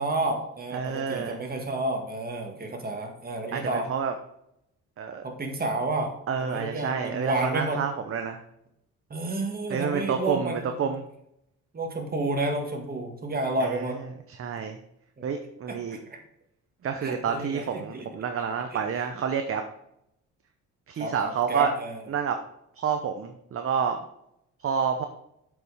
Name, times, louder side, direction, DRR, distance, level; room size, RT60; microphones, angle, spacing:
voice 1, 0.0-3.9 5.2-6.1 6.4-7.8 9.1-10.8 11.7-14.0 15.2-15.3 15.7-16.2 17.0-18.1 18.7-18.8 21.0-22.0, right 2 dB, 30° right, 3 dB, 1.9 m, -30 dB
voice 2, 0.7-1.4 3.5-4.1 5.0-5.2 6.3-8.4 9.7-11.0 13.6-14.0 14.4-14.8 15.2-16.0 16.8-19.6 20.9-21.7 22.1-22.4 22.8-24.0 24.6-25.0, right 7 dB, 45° right, 6 dB, 0.8 m, -29 dB
7.6 x 5.5 x 4.9 m, 0.78 s
cardioid pair, 90°, 30 cm